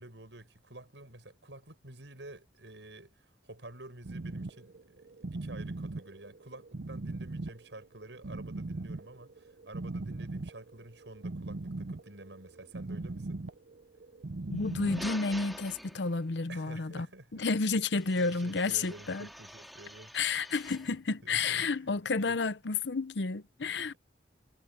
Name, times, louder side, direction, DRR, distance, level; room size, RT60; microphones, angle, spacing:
voice 1, 0.0-13.4 16.5-17.4 18.2-20.1 21.2-21.9 22.2-22.4, right 2 dB, 90° right, 6.7 m, -50 dB
sound 1, 4.0-15.4, right 2 dB, 65° right, 0.7 m, -40 dB
voice 2, 14.5-17.1 17.3-19.3 20.1-23.9, left 4 dB, 75° left, 0.8 m, -31 dB
sound 2, 14.5-16.4 18.0-21.0, equal, ahead, 2.3 m, -47 dB
head